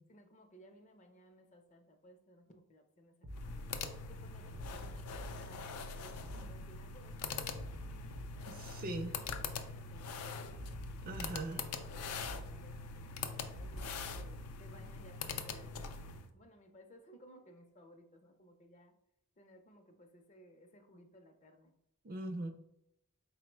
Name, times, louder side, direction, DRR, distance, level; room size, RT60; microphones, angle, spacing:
voice 1, 0.1-3.7 4.1-5.7 6.0-10.6 11.5-18.9 19.4-21.7, equal, 30° left, 5 dB, 0.4 m, -60 dB
sound 1, 3.2-3.6 4.5-5.4 6.2-6.6 7.5-8.5 9.2-9.6 10.5-11.5 12.2-12.6 13.5-14.5, equal, 75° right, 0.7 m, -47 dB
sound 2, 3.3-16.3, left 5 dB, 85° left, 0.4 m, -43 dB
voice 2, 8.5-9.2 11.0-11.6 22.0-22.5, right 2 dB, 40° right, 6 dB, 0.4 m, -40 dB
4.4 x 2.0 x 4.4 m, 0.80 s
head